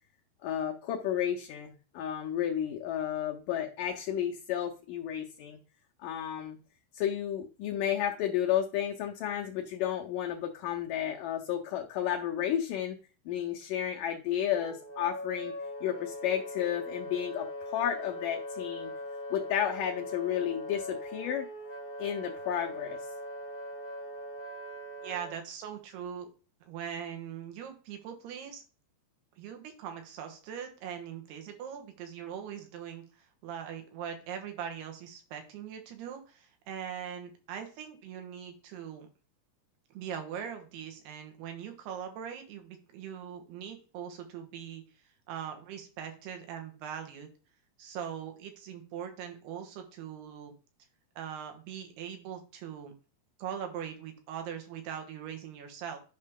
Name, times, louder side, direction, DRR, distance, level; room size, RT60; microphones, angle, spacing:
voice 1, 0.4-5.6 6.0-6.6 6.9-13.0 13.3-15.5 15.8-18.9 19.3-21.5 22.0-23.0, left 10 dB, 75° left, 2 dB, 2.0 m, -32 dB
Wind instrument woodwind instrument, 14.5-25.3, left 1 dB, 60° left, 0.5 m, -41 dB
voice 2, 25.0-26.3 26.6-28.6 29.4-39.1 39.9-44.8 45.3-47.3 47.8-50.5 51.2-52.9 53.4-56.0, right 8 dB, 90° right, 5 dB, 3.4 m, -41 dB
10.5 x 5.5 x 3.6 m, 0.36 s
omnidirectional pair, 4.5 m